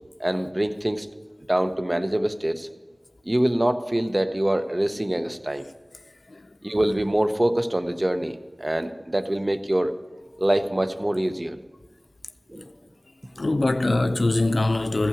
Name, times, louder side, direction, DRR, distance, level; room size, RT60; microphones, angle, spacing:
voice 1, 0.2-1.1 1.5-2.7 3.2-5.6 6.6-10.0 10.4-11.6 12.5-12.7, right 1 dB, 35° right, 0.7 m, -24 dB
voice 2, 13.4-15.1, left 2 dB, 80° left, 0.4 m, -23 dB
15.0 x 5.6 x 7.1 m
wide cardioid pair, 50°, 0 cm